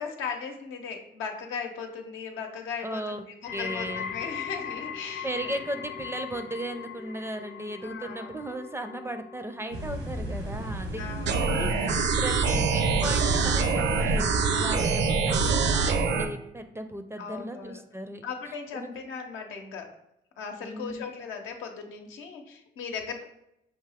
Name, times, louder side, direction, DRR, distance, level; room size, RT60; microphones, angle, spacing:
voice 1, 0.0-5.5 7.8-8.3 11.0-11.5 14.5-14.9 17.2-17.8 18.2-19.9 20.4-23.2, left 5 dB, 90° left, 3 dB, 0.8 m, -38 dB
voice 2, 2.8-3.2 3.5-4.1 5.2-18.2 18.7-18.9 20.6-21.0, right 1 dB, 10° right, 7 dB, 0.4 m, -36 dB
sound 1, 3.4-14.6 14.9-15.4 16.1-16.2, left 7 dB, 45° left, 0.5 m, -41 dB
sound 2, 9.7-14.8, right 1 dB, 80° right, 1.0 m, -34 dB
sound 3, 11.3-16.3, right 4 dB, 65° right, 0.6 m, -24 dB
5.8 x 2.6 x 3.5 m, 0.84 s
cardioid pair, 90°, 20 cm